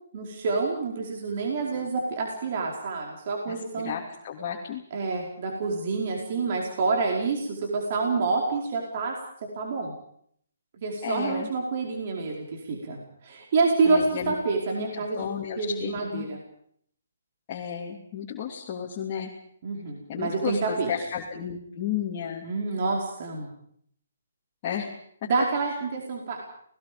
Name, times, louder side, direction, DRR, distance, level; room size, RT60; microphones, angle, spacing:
voice 1, 0.1-3.9 4.9-9.1 9.5-9.9 10.8-15.3 15.6-16.4 19.6-20.9 22.4-23.5 25.2-26.4, right 4 dB, 45° right, 0 dB, 5.0 m, -27 dB
voice 2, 3.5-4.8 11.0-11.5 13.8-14.3 14.8-16.3 17.5-19.3 20.1-22.5 24.6-24.9 25.2-25.3, left 8 dB, 35° left, -3 dB, 3.2 m, -33 dB
29.0 x 20.0 x 5.4 m, 0.65 s
hypercardioid pair, 150°, 0 cm